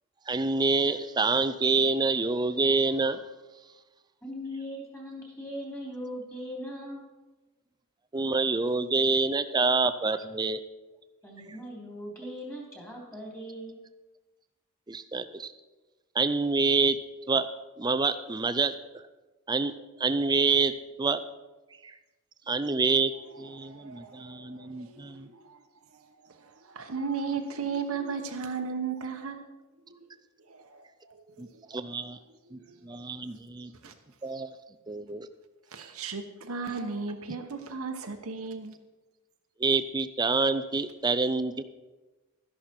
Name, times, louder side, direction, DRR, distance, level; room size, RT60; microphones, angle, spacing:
voice 1, 0.3-3.2 8.1-10.6 14.9-15.5 16.1-17.0 17.3-17.5 17.8-18.7 19.5-19.7 20.0-20.7 21.0-21.2 21.8-21.9 22.5-23.1 23.4-25.3 31.4-32.2 32.5-33.7 34.2-34.5 34.9-35.3 39.6-41.6, right 3 dB, 20° right, 11 dB, 0.5 m, -27 dB
voice 2, 4.2-7.0 11.2-13.8, equal, 10° left, -2 dB, 3.2 m, -39 dB
voice 3, 23.6-25.6 25.9-26.0 26.4-29.4 29.9-30.0 30.5-31.2 31.5-31.6 32.5-33.0 33.8-33.9 35.7-38.7, right 5 dB, 75° right, 5 dB, 1.0 m, -36 dB
12.5 x 11.0 x 4.4 m, 1.2 s
head